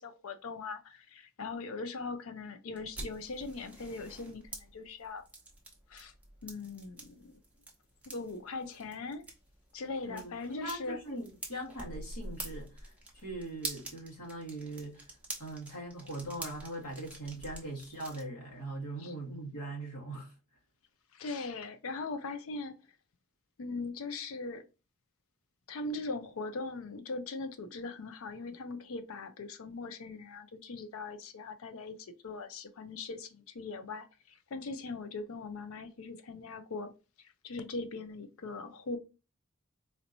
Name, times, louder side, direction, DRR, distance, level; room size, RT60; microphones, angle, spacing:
voice 1, 0.0-5.2 5.9-6.1 6.4-7.3 8.1-9.2 9.7-11.0 19.0-19.1 21.1-22.7 23.6-24.6 25.7-36.9 37.2-39.0, left 3 dB, 65° left, 0.4 m, -40 dB
sound 1, 2.7-18.2, right 2 dB, 5° right, 0.8 m, -47 dB
voice 2, 10.6-15.1 15.4-20.3, right 2 dB, 90° left, 1.8 m, -41 dB
4.2 x 2.9 x 2.6 m
head